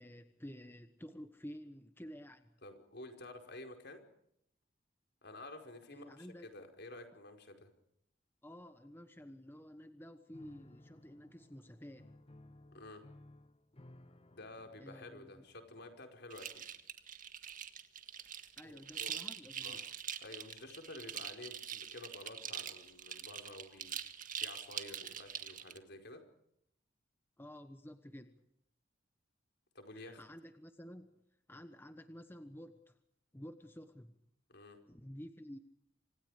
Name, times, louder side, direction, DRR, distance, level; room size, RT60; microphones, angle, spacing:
voice 1, 0.0-2.5 5.9-6.5 8.4-12.1 14.8-15.4 18.6-19.8 27.4-28.4 29.9-31.2 31.5-33.0 33.3-34.2 34.9-35.6, equal, 10° left, 8 dB, 1.2 m, -51 dB
voice 2, 2.6-4.0 5.2-7.7 12.7-13.0 14.3-16.5 18.6-19.1 19.6-19.8 20.2-26.2 29.7-30.2 34.5-34.8, left 2 dB, 60° left, 5 dB, 5.0 m, -51 dB
Piano, 10.3-16.2, left 1 dB, 30° left, 1.1 m, -59 dB
sound 1, 16.3-25.8, right 8 dB, 45° right, 1.7 m, -44 dB
29.0 x 26.0 x 5.0 m, 0.75 s
head